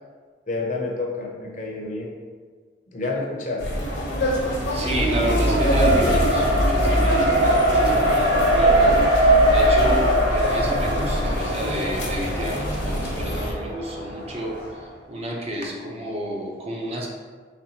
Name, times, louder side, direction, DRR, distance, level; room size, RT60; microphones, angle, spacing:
voice 1, 0.5-2.1 2.9-3.8, left 3 dB, 45° left, -1 dB, 0.6 m, -29 dB
sound 1, 3.6-13.5, equal, 80° left, 0.8 m, -24 dB
Race car auto racing, 3.7-14.7, right 1 dB, 85° right, 1.1 m, -22 dB
voice 2, 4.7-14.6 15.1-17.1, right 1 dB, 35° right, -1 dB, 0.5 m, -31 dB
4.1 x 3.1 x 2.8 m, 1.5 s
head